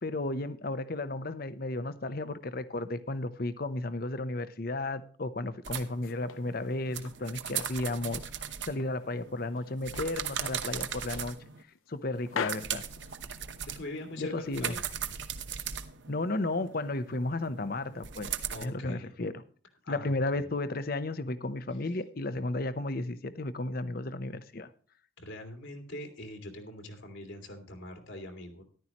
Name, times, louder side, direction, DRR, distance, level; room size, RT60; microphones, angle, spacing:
voice 1, 0.0-8.2 8.7-11.4 11.9-12.8 14.2-14.7 16.1-18.3 18.6-19.3 19.9-24.7, left 2 dB, 50° left, 0.8 m, -33 dB
sound 1, 5.6-11.6 12.1-18.7, right 8 dB, 60° right, 1.0 m, -39 dB
sound 2, 6.0-7.2 7.6-9.0 9.4-10.2 10.5-10.7 11.1-12.0 12.3-13.7, left 6 dB, 85° left, 0.7 m, -42 dB
voice 2, 13.6-14.8 18.5-19.1 19.8-20.5 22.3-22.4 25.2-28.6, left 1 dB, 70° left, 2.3 m, -43 dB
14.0 x 11.0 x 3.0 m
head